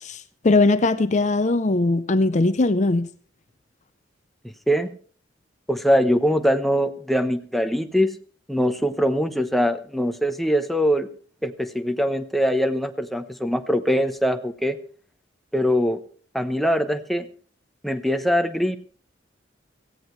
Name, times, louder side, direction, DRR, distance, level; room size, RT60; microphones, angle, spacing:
voice 1, 0.0-3.1, left 2 dB, 40° left, 0.6 m, -20 dB
voice 2, 5.7-8.1 8.5-11.1 11.4-14.8 15.5-16.0 16.3-17.3 17.8-18.8, equal, ahead, 0.9 m, -22 dB
17.5 x 15.0 x 3.2 m
head